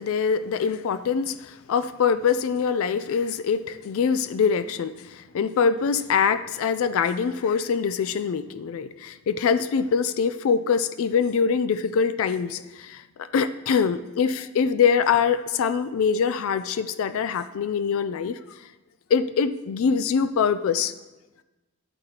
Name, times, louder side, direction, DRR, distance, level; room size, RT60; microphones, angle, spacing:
voice 1, 0.0-18.4 19.1-20.9, left 6 dB, 65° left, 13 dB, 0.3 m, -24 dB
11.0 x 8.8 x 2.8 m, 1.1 s
head